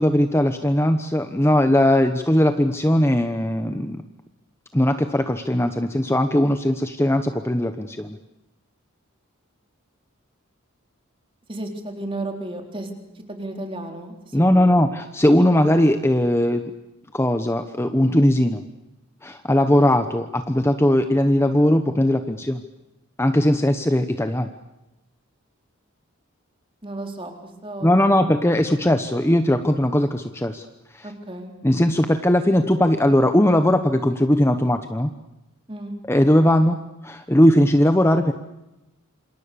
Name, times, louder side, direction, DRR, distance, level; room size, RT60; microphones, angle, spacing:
voice 1, 0.0-4.0 4.7-8.2 14.3-16.7 17.1-18.6 19.2-22.6 23.2-24.5 27.8-30.6 30.9-31.1 31.6-35.1 36.1-38.3, left 1 dB, 10° left, 7 dB, 1.0 m, -19 dB
voice 2, 11.5-12.9 13.3-14.8 26.8-28.3 31.0-31.5 35.7-35.9, right 2 dB, 25° right, 3 dB, 4.0 m, -33 dB
27.5 x 27.5 x 6.9 m, 0.96 s
head